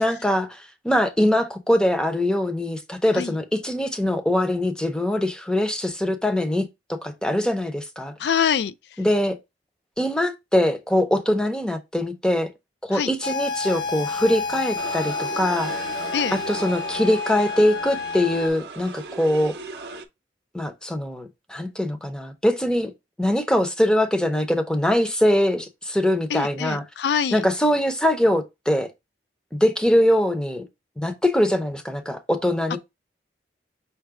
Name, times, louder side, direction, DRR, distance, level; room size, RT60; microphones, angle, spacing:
voice 1, 0.0-8.1 9.0-9.4 10.0-12.5 12.8-15.7 16.3-19.6 20.5-22.9 23.2-26.8 27.3-28.9 29.5-30.7 31.0-32.8, left 1 dB, 5° left, 0.5 m, -22 dB
voice 2, 8.2-8.7 12.9-13.1 16.1-16.4 26.3-27.4, left 7 dB, 65° left, 0.3 m, -24 dB
sound 1, 13.2-18.5, left 4 dB, 85° left, 0.9 m, -30 dB
sound 2, 14.8-20.1, right 4 dB, 65° right, 0.6 m, -37 dB
5.6 x 2.1 x 3.6 m
head